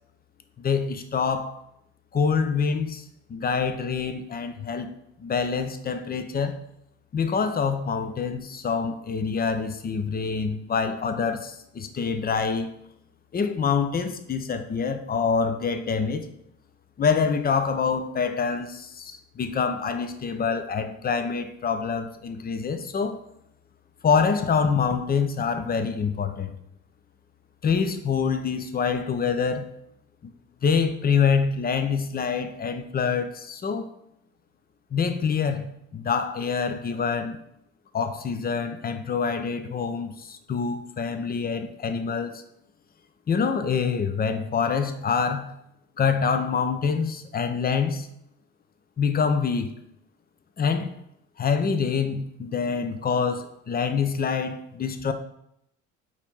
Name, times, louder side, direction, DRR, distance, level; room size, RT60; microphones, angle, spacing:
voice 1, 0.6-1.6 2.1-3.0 3.3-4.9 5.2-6.6 7.1-12.7 13.3-16.3 17.0-23.2 24.0-26.5 27.6-29.7 30.6-33.9 34.9-37.4 37.9-42.4 43.3-45.6 46.0-48.1 49.0-49.7 50.6-51.0 51.4-55.1, left 6 dB, 25° left, 0.6 m, -26 dB
4.0 x 2.8 x 4.6 m
supercardioid pair, 75°, 34 cm